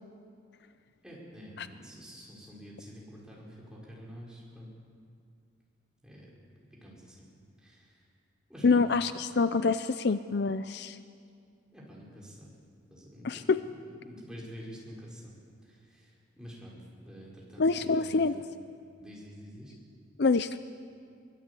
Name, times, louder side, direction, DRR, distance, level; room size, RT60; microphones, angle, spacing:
voice 1, 1.0-4.7 6.0-6.3 6.8-7.2 7.6-7.9 8.5-8.9 11.7-12.5 12.9-15.3 15.6-16.8 17.1-17.6 17.9-18.4 19.0-19.7, equal, 5° right, -5 dB, 5.1 m, -48 dB
voice 2, 8.6-11.0 13.2-13.6 17.6-18.3 20.2-20.6, left 4 dB, 55° left, 12 dB, 0.5 m, -26 dB
23.5 x 19.5 x 8.4 m, 2.3 s
head